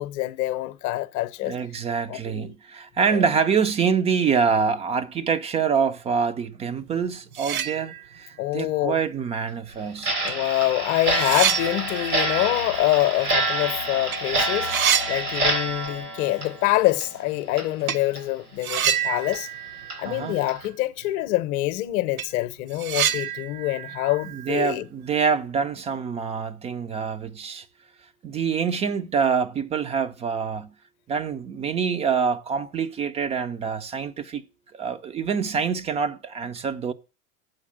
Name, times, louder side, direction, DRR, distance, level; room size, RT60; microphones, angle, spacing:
voice 1, 0.0-1.6 2.1-2.5 3.1-3.2 8.4-9.0 10.2-19.5 20.0-24.9, left 17 dB, 40° left, 0.8 m, -25 dB
voice 2, 1.4-10.4 20.0-20.3 24.3-27.7 28.2-30.7 31.1-34.4 34.7-36.9, right 6 dB, 15° right, 0.4 m, -26 dB
sound 1, 7.0-7.1 7.3-8.4 8.7-8.8 9.8-9.9 10.3-13.7 14.0-14.2 14.5-16.0 16.3-16.4 17.9-18.1 18.6-20.8 21.0-21.1 21.6-21.7 22.0-25.2, right 9 dB, 70° right, 0.8 m, -29 dB
Clock, 10.0-17.2 17.5-17.7 18.1-18.2 18.7-18.8 19.3-19.4 19.9-20.0 20.5-20.7, right 1 dB, 85° right, 3.5 m, -27 dB
7.7 x 4.8 x 7.3 m
hypercardioid pair, 95°, 44 cm